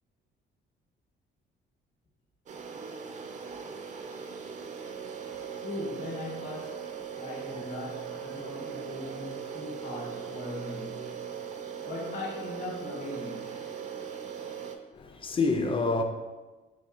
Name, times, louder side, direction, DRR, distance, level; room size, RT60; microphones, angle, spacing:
Quiet Kitchen Ambience (Surround), 2.5-14.8, right 7 dB, 40° right, 0.4 m, -39 dB
voice 1, 5.6-11.3 11.8-13.8, left 2 dB, 50° left, 1.0 m, -39 dB
voice 2, 14.9-16.0, left 3 dB, 25° left, 0.4 m, -27 dB
4.2 x 2.8 x 2.4 m
cardioid pair, 90°, 20 cm